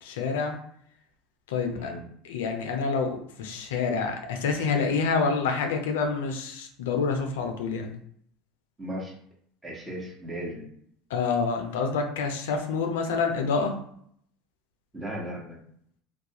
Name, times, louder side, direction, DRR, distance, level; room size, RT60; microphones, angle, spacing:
voice 1, 0.0-0.6 1.5-1.9 2.2-7.9 11.1-13.7, left 5 dB, 80° left, 4 dB, 0.4 m, -27 dB
voice 2, 1.7-2.1 8.8-9.1 9.6-10.7 14.9-15.6, equal, 20° right, -2 dB, 1.0 m, -36 dB
2.3 x 2.2 x 2.8 m, 0.65 s
hypercardioid pair, 80°, 0 cm